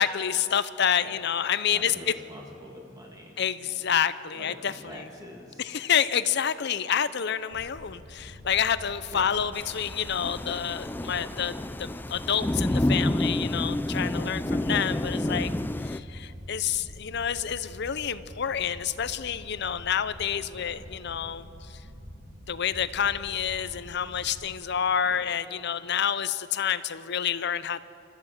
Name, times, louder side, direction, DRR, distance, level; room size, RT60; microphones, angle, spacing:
voice 1, 0.0-2.1 3.4-5.0 5.6-15.5 15.9-21.8 22.5-27.8, left 8 dB, 60° left, 14 dB, 0.7 m, -28 dB
voice 2, 1.7-3.4 4.3-5.7 9.1-9.4 15.3-15.6 20.6-20.9 25.1-25.3, equal, 20° right, -1 dB, 2.1 m, -45 dB
sound 1, 7.5-24.5, equal, 45° right, 2.8 m, -46 dB
Thunder / Rain, 9.5-16.0, left 1 dB, 10° left, 0.4 m, -29 dB
28.0 x 14.0 x 7.4 m, 2.9 s
head